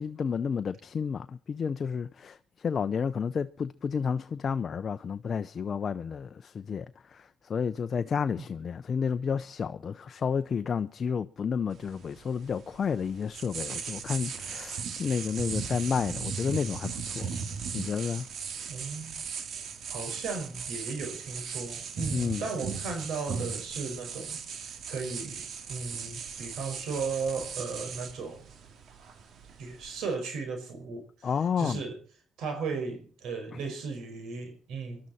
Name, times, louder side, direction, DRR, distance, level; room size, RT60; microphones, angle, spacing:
voice 1, 0.0-17.3 17.7-18.3 22.1-22.4 31.2-31.8, left 6 dB, 45° left, 0.6 m, -31 dB
sound 1, 11.7-30.1, right 6 dB, 65° right, 2.4 m, -38 dB
voice 2, 18.7-19.2 19.9-25.4 25.7-28.4 29.6-31.3 31.6-32.0 32.4-35.1, right 4 dB, 80° right, 5.2 m, -36 dB
23.5 x 12.5 x 4.3 m
cardioid pair, 90°, 0 cm